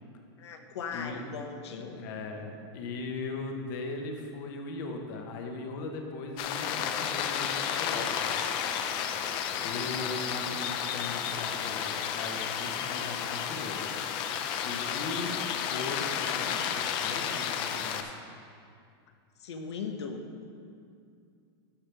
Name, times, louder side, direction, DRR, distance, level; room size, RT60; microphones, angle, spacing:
voice 1, 0.4-2.0 2.4-2.6 19.4-20.4, left 5 dB, 85° left, 5 dB, 0.9 m, -39 dB
voice 2, 0.9-1.2 1.9-8.4 8.8-9.0 9.6-14.2 14.6-15.4 15.7-18.1, left 3 dB, 50° left, 3 dB, 1.1 m, -39 dB
sound 1, 6.4-18.0, left 8 dB, 35° left, 0.5 m, -32 dB
13.0 x 5.6 x 3.4 m, 2.4 s
supercardioid pair, 155°, 14 cm